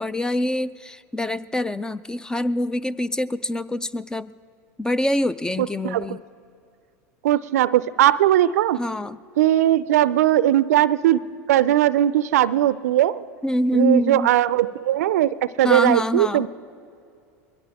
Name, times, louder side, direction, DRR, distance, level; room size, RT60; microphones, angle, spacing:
voice 1, 0.0-4.3 4.8-6.2 8.8-9.2 13.4-14.3 15.6-16.5, left 1 dB, 10° left, 17 dB, 0.3 m, -25 dB
voice 2, 5.6-6.2 7.2-8.8 9.4-11.2 11.5-13.2 13.7-16.5, right 13 dB, 80° right, 18 dB, 0.4 m, -19 dB
22.0 x 16.5 x 3.5 m, 2.4 s
hypercardioid pair, 100°, 8 cm